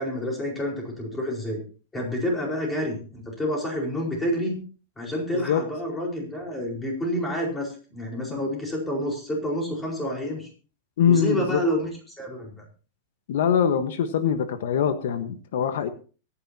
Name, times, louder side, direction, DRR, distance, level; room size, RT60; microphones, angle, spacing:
voice 1, 0.0-1.6 1.9-4.6 5.0-10.5 11.1-11.9 12.2-12.6, equal, 10° left, -1 dB, 4.7 m, -28 dB
voice 2, 11.0-11.6 13.3-15.9, left 8 dB, 70° left, 9 dB, 1.3 m, -23 dB
23.5 x 10.0 x 2.9 m, 0.37 s
supercardioid pair, 165°, 0 cm